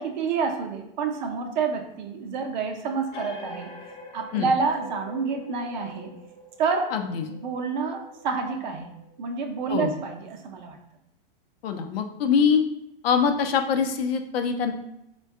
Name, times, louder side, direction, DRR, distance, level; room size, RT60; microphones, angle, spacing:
voice 1, 0.0-3.7 4.1-6.1 6.6-6.9 7.3-8.9 9.2-10.8, right 5 dB, 50° right, 4 dB, 0.5 m, -28 dB
sound 1, 3.1-10.3, left 3 dB, 25° left, 0.5 m, -45 dB
voice 2, 6.9-7.3 9.7-9.9 11.6-12.6 13.0-14.7, left 6 dB, 75° left, 6 dB, 0.6 m, -23 dB
3.5 x 2.2 x 3.5 m, 0.82 s
supercardioid pair, 165°, 30 cm